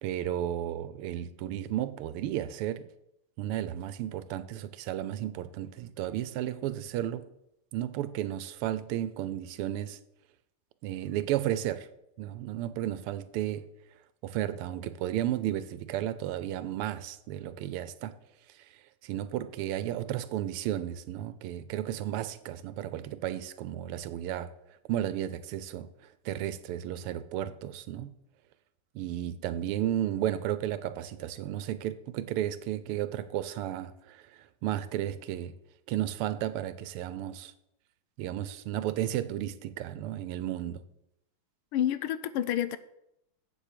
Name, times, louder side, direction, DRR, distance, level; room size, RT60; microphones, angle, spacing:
voice 1, 0.0-2.9 3.4-7.3 7.7-10.0 10.8-11.9 12.2-13.7 14.2-18.2 18.5-24.5 24.9-25.9 26.2-28.1 28.9-35.6 35.9-37.5 38.2-40.8, right 12 dB, 85° right, 1.6 m, -33 dB
voice 2, 41.7-42.8, left 11 dB, 80° left, 1.5 m, -29 dB
7.9 x 7.4 x 6.8 m
omnidirectional pair, 2.4 m